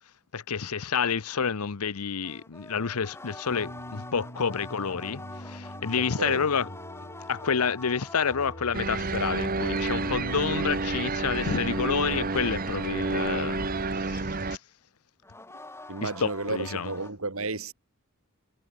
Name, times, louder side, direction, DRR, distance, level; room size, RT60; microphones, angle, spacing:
voice 1, 0.3-6.7 7.3-13.7 13.9-14.6 16.0-16.9, left 6 dB, 85° left, 0.8 m, -29 dB
sound 1, 2.2-8.7 9.1-14.6 15.2-17.1, left 2 dB, 10° left, 2.2 m, -46 dB
sound 2, 3.5-10.6, equal, 35° left, 6.6 m, -44 dB
voice 2, 6.0-6.5 15.9-17.7, right 3 dB, 70° right, 2.5 m, -32 dB
sound 3, 8.7-14.6, right 3 dB, 40° right, 1.2 m, -29 dB
head